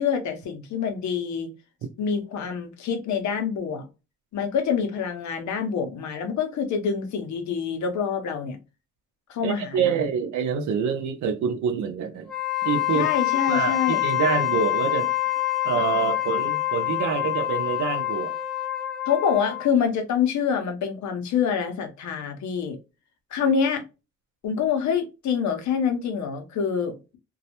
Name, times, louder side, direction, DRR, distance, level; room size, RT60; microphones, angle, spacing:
voice 1, 0.0-1.5 2.0-3.9 4.3-8.6 9.3-10.0 12.9-14.0 19.1-22.8 23.3-23.8 24.4-27.2, left 7 dB, 70° left, 0.7 m, -26 dB
voice 2, 9.4-12.3 12.6-13.1 13.5-15.1 15.6-18.3, right 7 dB, 70° right, 0.6 m, -26 dB
Wind instrument woodwind instrument, 12.2-19.7, left 15 dB, ahead, 0.7 m, -26 dB
2.3 x 2.0 x 2.8 m
cardioid pair, 90°, 30 cm